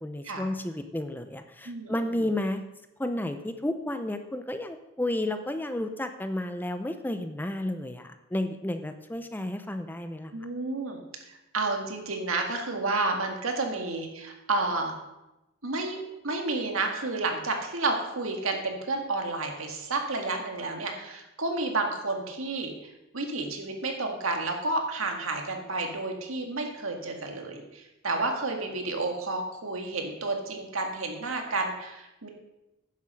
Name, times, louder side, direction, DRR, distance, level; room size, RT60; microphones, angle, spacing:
voice 1, 0.0-2.6 3.0-10.3, left 1 dB, 10° left, 8 dB, 0.5 m, -32 dB
voice 2, 1.7-2.3 10.3-11.0 11.3-14.9 15.6-22.7 23.1-32.3, right 3 dB, 80° right, 3 dB, 1.9 m, -31 dB
10.0 x 7.3 x 6.3 m, 0.95 s
head